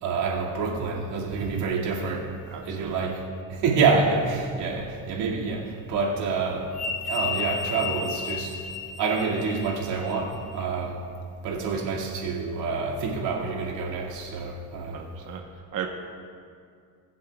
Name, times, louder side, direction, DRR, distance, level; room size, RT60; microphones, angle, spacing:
voice 1, 0.0-2.3 2.6-3.2 3.5-6.7 7.0-8.5 9.0-11.0 11.4-15.0, right 4 dB, 80° right, -3 dB, 2.2 m, -27 dB
sound 1, 1.3-1.8 5.9-10.5, left 5 dB, ahead, 2.2 m, -33 dB
voice 2, 2.5-3.1 14.9-15.4 15.7-15.9, right 9 dB, 50° right, 1 dB, 1.1 m, -35 dB
21.5 x 7.6 x 2.3 m, 2.2 s
supercardioid pair, 90°, 41 cm